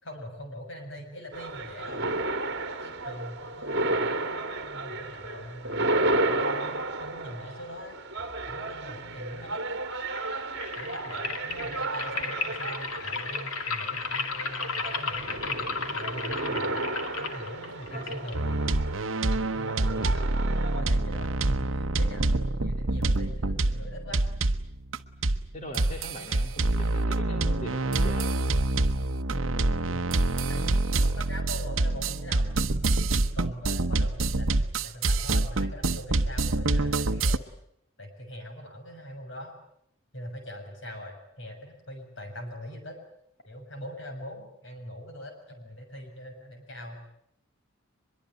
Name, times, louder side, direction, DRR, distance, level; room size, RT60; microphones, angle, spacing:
voice 1, 0.0-2.1 2.8-5.9 6.3-8.0 8.5-9.8 10.7-16.8 17.2-18.7 19.2-24.2 29.3-30.1 30.5-32.5 33.0-34.5 34.7-37.4 38.0-39.5 40.1-43.0 43.4-47.0, equal, 60° left, 5 dB, 6.8 m, -42 dB
sound 1, 1.3-20.8, right 2 dB, 55° right, 2.3 m, -33 dB
sound 2, 10.0-19.0, left 4 dB, 85° left, 2.4 m, -34 dB
sound 3, 18.3-25.0 25.2-25.5 25.7-37.4, right 2 dB, 70° right, 1.0 m, -26 dB
voice 2, 25.5-28.3 45.2-45.3, equal, 35° left, 2 dB, 2.8 m, -41 dB
24.0 x 22.5 x 9.1 m, 0.74 s
head